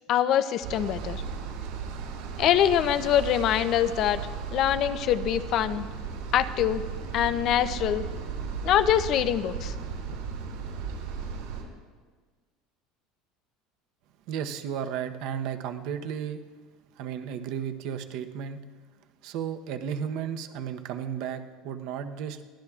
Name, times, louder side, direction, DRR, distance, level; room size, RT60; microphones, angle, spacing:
voice 1, 0.1-1.2 2.4-4.2 4.5-5.9 6.3-6.8 7.1-8.0 8.6-9.7, left 10 dB, 40° left, 12 dB, 0.5 m, -24 dB
sound 1, 0.6-11.6, right 6 dB, 85° right, 5.6 m, -35 dB
voice 2, 14.3-16.4 17.0-18.6 19.2-22.5, right 8 dB, 55° right, 7 dB, 0.9 m, -34 dB
23.0 x 17.0 x 2.4 m, 1.5 s
cardioid pair, 165°, 0 cm